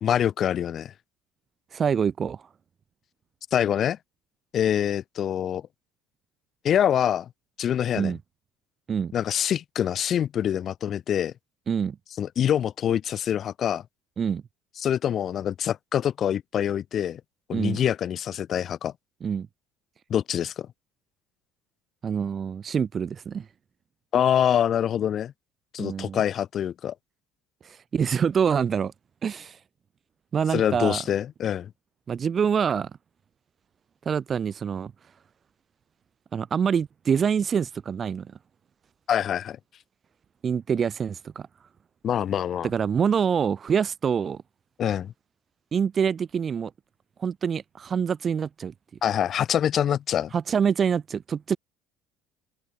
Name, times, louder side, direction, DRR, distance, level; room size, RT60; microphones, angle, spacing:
voice 1, 0.0-0.9 3.5-4.0 4.5-5.6 6.6-7.3 7.6-8.1 9.1-11.3 12.2-13.8 14.8-17.2 17.5-18.9 20.1-20.7 24.1-25.3 25.7-26.9 30.5-31.7 39.1-39.6 42.0-42.7 44.8-45.1 49.0-50.3, left 9 dB, 35° left, 1.0 m, -25 dB
voice 2, 1.7-2.4 7.9-8.2 8.9-9.1 11.7-12.0 14.2-14.4 17.5-17.8 19.2-19.5 22.0-23.5 25.8-26.2 27.6-28.9 29.2-29.6 30.3-31.0 32.1-32.9 34.1-34.9 36.3-38.3 40.4-41.5 42.6-44.4 45.7-46.7 47.2-48.7 50.3-51.6, right 7 dB, 25° right, 0.4 m, -25 dB
open air
cardioid pair, 160°, 0 cm